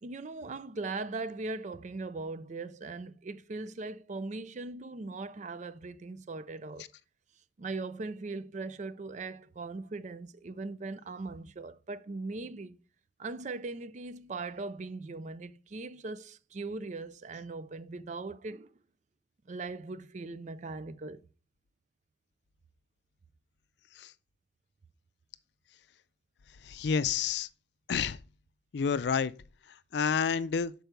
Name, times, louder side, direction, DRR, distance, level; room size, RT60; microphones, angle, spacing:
voice 1, 0.0-6.9 7.6-12.8 13.2-18.7 19.5-21.2, right 3 dB, 40° right, 0.4 m, -39 dB
voice 2, 26.6-27.5 27.9-28.2 28.7-29.3 29.9-30.7, left 6 dB, 65° left, 0.4 m, -29 dB
6.7 x 4.6 x 4.5 m
head